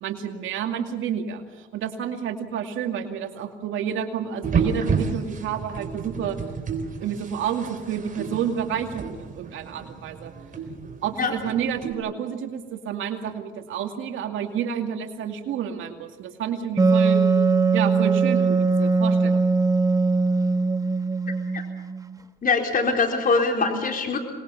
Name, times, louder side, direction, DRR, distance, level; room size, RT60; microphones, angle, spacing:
voice 1, 0.0-1.4 1.7-6.4 7.0-10.3 11.0-17.2 17.7-19.4, right 8 dB, 80° right, 5 dB, 2.4 m, -30 dB
sound 1, 4.4-11.9, right 5 dB, 40° right, 4.1 m, -31 dB
Wind instrument woodwind instrument, 16.8-22.2, right 4 dB, 15° right, 1.3 m, -21 dB
voice 2, 22.4-24.2, left 4 dB, 45° left, 3 dB, 4.1 m, -23 dB
25.5 x 21.0 x 7.2 m, 1.2 s
cardioid pair, 90°, 20 cm